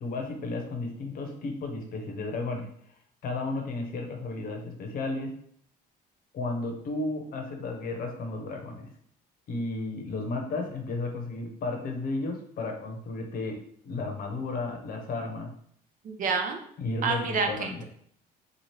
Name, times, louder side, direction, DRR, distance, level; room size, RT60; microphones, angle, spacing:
voice 1, 0.0-2.7 3.2-5.3 6.3-8.9 9.5-15.5 16.8-17.8, left 2 dB, 60° left, 3 dB, 0.7 m, -33 dB
voice 2, 16.0-16.6 17.0-17.8, right 4 dB, 50° right, 5 dB, 0.5 m, -28 dB
2.9 x 2.3 x 3.2 m, 0.64 s
cardioid pair, 110°, 17 cm